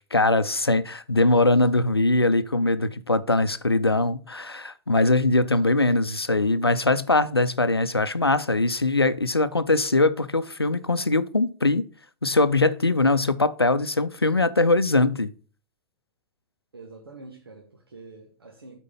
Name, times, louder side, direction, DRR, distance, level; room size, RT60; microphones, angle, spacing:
voice 1, 0.0-11.8 12.2-15.3, left 2 dB, 90° left, 0.5 m, -22 dB
voice 2, 16.7-18.8, right 3 dB, 75° right, 1.5 m, -45 dB
8.3 x 4.5 x 5.5 m
figure-of-eight pair, 95°, 13 cm